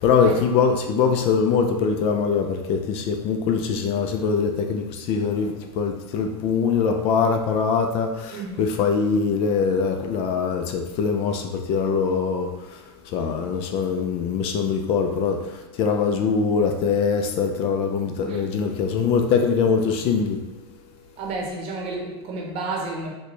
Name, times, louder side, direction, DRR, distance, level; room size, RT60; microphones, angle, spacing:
voice 1, 0.0-12.5 13.1-15.4 15.8-20.4, left 5 dB, 45° left, 5 dB, 0.4 m, -22 dB
voice 2, 8.3-8.7 18.3-18.5 21.2-23.1, right 3 dB, 45° right, 0 dB, 0.8 m, -31 dB
4.2 x 2.2 x 3.0 m, 1.1 s
supercardioid pair, 135°, 14 cm